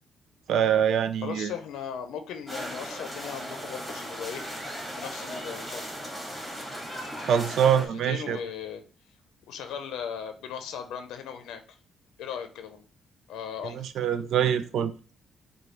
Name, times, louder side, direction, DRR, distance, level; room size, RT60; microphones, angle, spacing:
voice 1, 0.5-1.5 7.2-8.4 13.7-14.9, right 8 dB, 70° right, 0.4 m, -24 dB
voice 2, 1.2-4.4 4.9-5.9 7.8-8.8 9.5-11.6 12.2-12.8 13.3-13.8, left 8 dB, 85° left, 0.6 m, -37 dB
sound 1, 2.5-7.9, equal, 5° right, 2.0 m, -37 dB
4.9 x 2.3 x 4.3 m
cardioid pair, 90°, 0 cm